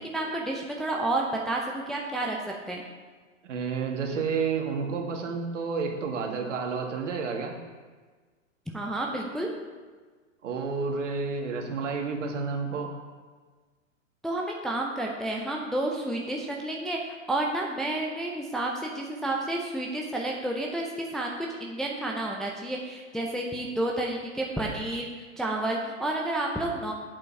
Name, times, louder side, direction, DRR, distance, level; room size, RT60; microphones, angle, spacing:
voice 1, 0.0-2.4 2.7-2.8 8.7-9.5 14.2-25.1 25.4-26.9, right 1 dB, ahead, -1 dB, 0.5 m, -30 dB
voice 2, 3.4-7.5 10.4-12.9, right 5 dB, 65° right, 2 dB, 1.9 m, -30 dB
8.0 x 7.6 x 4.7 m, 1.4 s
hypercardioid pair, 115°, 39 cm